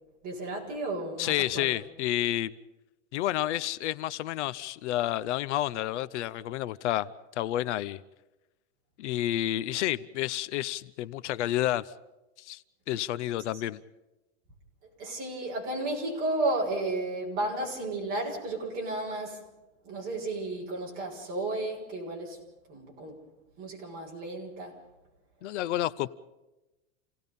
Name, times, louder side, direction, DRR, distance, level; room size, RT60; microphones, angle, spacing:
voice 1, 0.2-1.7 15.0-19.4 19.8-22.4 22.7-23.2 23.6-24.8, right 2 dB, 25° right, 6.1 m, -33 dB
voice 2, 1.2-2.5 3.1-7.1 7.4-8.0 9.0-11.9 12.4-12.6 12.9-13.8 25.4-26.1, left 14 dB, 75° left, 0.8 m, -30 dB
29.0 x 18.0 x 5.4 m
supercardioid pair, 175°, 36 cm